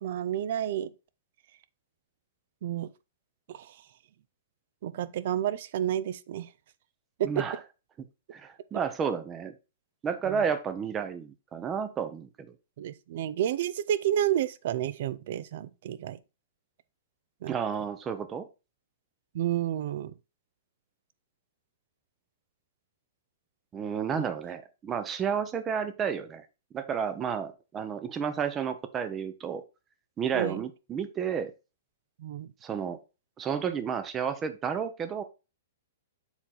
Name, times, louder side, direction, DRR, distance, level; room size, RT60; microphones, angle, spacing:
voice 1, 0.0-0.9 2.6-2.9 3.5-3.8 4.8-6.5 7.2-7.4 10.3-10.4 12.8-16.2 17.4-17.5 19.3-20.1 24.1-24.3 30.3-30.6 32.2-32.5, right 11 dB, 55° right, 0.5 m, -30 dB
voice 2, 7.2-7.6 8.3-9.5 10.0-12.5 17.5-18.5 23.7-26.4 26.7-29.6 30.2-31.5 32.6-33.0 33.4-35.2, right 7 dB, 20° right, 0.7 m, -31 dB
7.1 x 3.8 x 4.2 m
hypercardioid pair, 150°, 0 cm